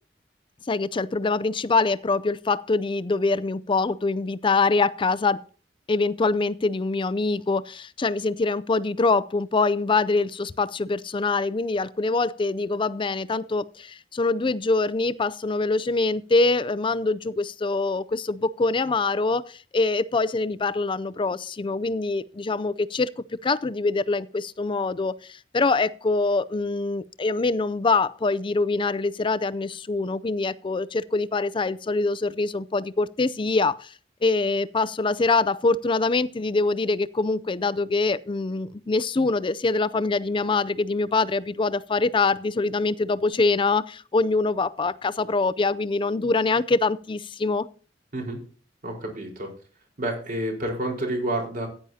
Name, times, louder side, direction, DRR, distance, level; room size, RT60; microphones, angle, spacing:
voice 1, 0.7-5.4 5.9-33.9 34.2-47.7, left 3 dB, 30° left, 0.4 m, -24 dB
voice 2, 48.8-49.5 50.0-51.7, right 1 dB, 50° right, 4.5 m, -29 dB
15.0 x 9.8 x 2.8 m
head